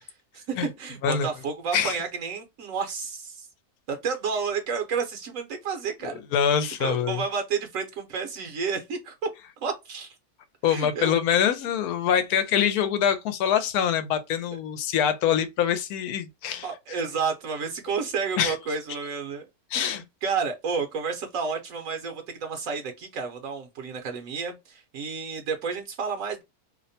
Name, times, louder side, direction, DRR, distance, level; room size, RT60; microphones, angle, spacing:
voice 1, 0.0-3.5 3.9-6.2 6.8-9.1 9.6-10.1 10.7-11.1 16.6-19.5 19.7-26.4, right 5 dB, 70° right, 1.0 m, -31 dB
voice 2, 6.3-7.2 10.6-16.7 18.4-18.5 19.7-20.0, left 8 dB, 80° left, 1.1 m, -24 dB
2.8 x 2.1 x 2.6 m
omnidirectional pair, 1.6 m